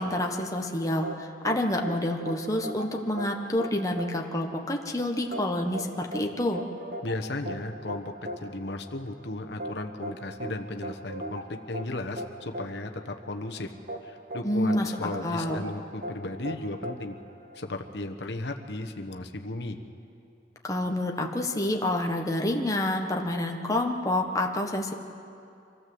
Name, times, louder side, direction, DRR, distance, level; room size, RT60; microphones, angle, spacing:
voice 1, 0.0-6.6 14.4-15.7 20.6-24.9, left 1 dB, 20° left, 1 dB, 1.4 m, -28 dB
sound 1, 1.0-17.9, right 1 dB, 55° right, 1.6 m, -39 dB
voice 2, 7.0-8.1 8.4-13.7 14.0-17.2 17.5-19.8, left 2 dB, 75° left, 4 dB, 1.2 m, -35 dB
25.5 x 15.0 x 7.9 m, 2.6 s
head